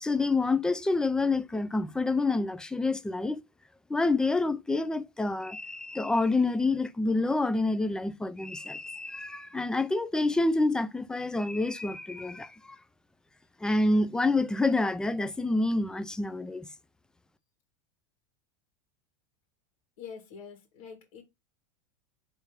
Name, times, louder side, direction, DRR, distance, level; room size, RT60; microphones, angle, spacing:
voice 1, 0.0-3.4 3.9-12.8 13.6-16.7, left 2 dB, 5° left, 0.4 m, -27 dB
voice 2, 20.0-21.2, left 6 dB, 75° left, 1.8 m, -45 dB
4.4 x 3.3 x 3.3 m
supercardioid pair, 120°, 17 cm